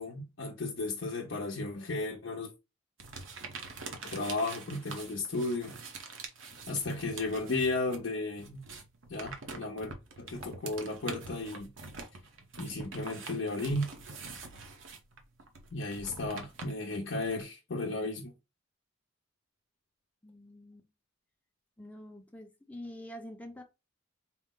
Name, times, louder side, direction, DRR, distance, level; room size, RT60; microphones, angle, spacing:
voice 1, 0.0-2.5 4.0-5.8 6.7-8.6 9.1-9.9 10.2-11.7 12.6-13.9 15.7-18.3, left 2 dB, 60° left, 0.7 m, -34 dB
sound 1, 3.0-8.1 8.3-17.4, right 4 dB, 70° right, 0.9 m, -45 dB
voice 2, 20.2-20.9 21.8-23.6, left 1 dB, 5° left, 0.7 m, -46 dB
4.4 x 2.1 x 3.7 m
head